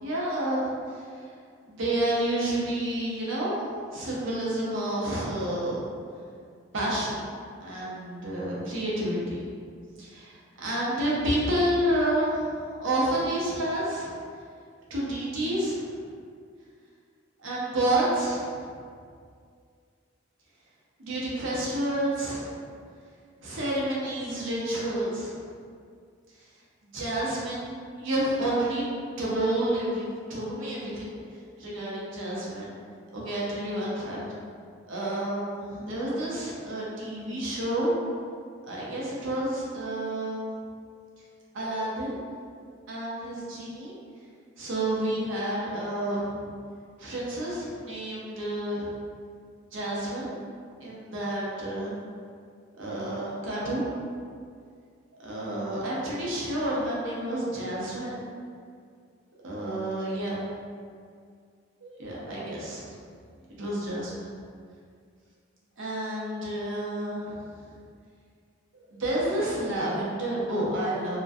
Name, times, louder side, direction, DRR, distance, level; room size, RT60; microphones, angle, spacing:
voice 1, 0.0-1.1 1.6-3.6 3.9-5.8 6.7-7.2 7.6-9.4 10.0-14.1 14.9-15.9 17.4-18.6 21.0-22.5 23.4-25.4 26.8-28.8 29.2-31.2 31.6-32.7 33.1-34.2 34.8-37.9 38.7-40.6 41.5-42.2 42.9-43.9 44.6-46.5 47.0-48.9 49.7-50.3 50.8-52.0 52.8-53.9 55.2-58.2 59.4-60.4 61.8-63.0 63.6-64.3 65.8-67.4 67.7-67.8 68.7-71.2, right 1 dB, 65° right, -6 dB, 0.6 m, -29 dB
2.5 x 2.1 x 2.3 m, 2.2 s
head